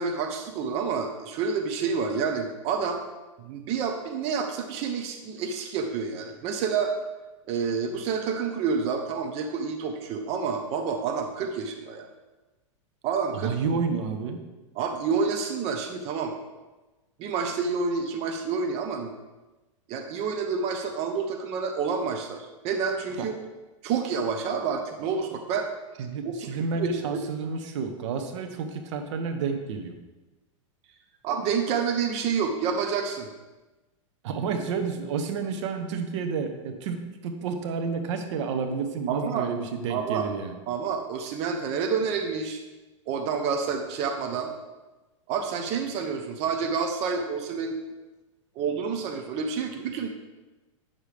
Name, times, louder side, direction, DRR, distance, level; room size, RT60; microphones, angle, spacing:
voice 1, 0.0-3.0 3.4-6.9 7.5-12.1 13.0-13.5 14.8-16.4 17.2-19.1 19.9-23.3 23.8-25.7 26.2-26.3 26.7-27.2 31.2-33.3 39.1-39.5 39.9-40.3 40.7-42.6 43.1-44.5 45.3-47.8 48.6-50.1, right 5 dB, 40° right, 5 dB, 0.9 m, -28 dB
voice 2, 13.3-14.4 23.2-23.3 26.0-30.0 34.2-40.6, right 5 dB, 65° right, 6 dB, 1.0 m, -30 dB
9.0 x 6.6 x 3.5 m, 1.1 s
hypercardioid pair, 125°, 17 cm